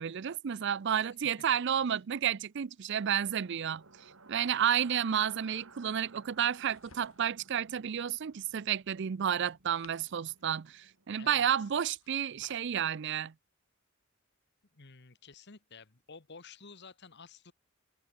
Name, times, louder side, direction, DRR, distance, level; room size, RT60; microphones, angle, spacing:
voice 1, 0.0-3.8 4.3-13.3, right 9 dB, 60° right, 0.5 m, -31 dB
sound 1, 3.3-11.3, right 4 dB, 80° right, 3.0 m, -58 dB
sound 2, 6.4-7.5 9.4-10.6 11.8-12.7, left 5 dB, 80° left, 3.0 m, -60 dB
voice 2, 11.2-11.7 14.7-17.5, left 5 dB, 55° left, 1.5 m, -52 dB
head